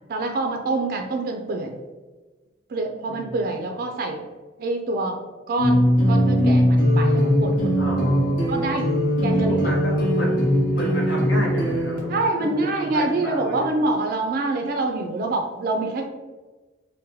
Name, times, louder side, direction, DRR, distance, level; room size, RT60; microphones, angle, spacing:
voice 1, 0.1-1.8 2.7-4.2 4.6-5.2 5.5-8.0 8.5-9.7 12.1-16.1, right 2 dB, 50° right, 3 dB, 0.3 m, -26 dB
voice 2, 3.1-3.4 7.8-8.5 9.3-10.4 10.7-13.7, equal, 70° left, -3 dB, 1.0 m, -31 dB
sound 1, 5.6-12.0, equal, 50° left, 0.9 m, -20 dB
2.7 x 2.1 x 3.8 m, 1.2 s
head